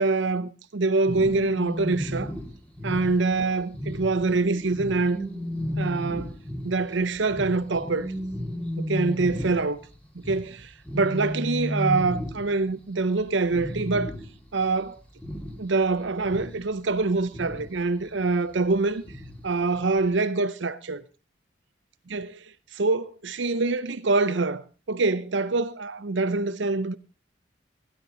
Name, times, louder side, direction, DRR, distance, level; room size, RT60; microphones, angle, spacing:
voice 1, 0.0-2.3 2.8-5.2 5.8-6.3 6.6-8.1 8.8-9.8 10.3-14.2 14.5-15.0 15.6-19.0 19.4-21.0 22.1-22.4 22.7-27.0, right 3 dB, 75° right, 0.7 m, -25 dB
sound 1, 1.1-12.8 13.1-13.2 13.5-14.5 14.8-15.8 16.2-17.8 19.0-19.5 19.9-20.0, equal, 5° left, 1.7 m, -33 dB
15.5 x 11.5 x 3.9 m
head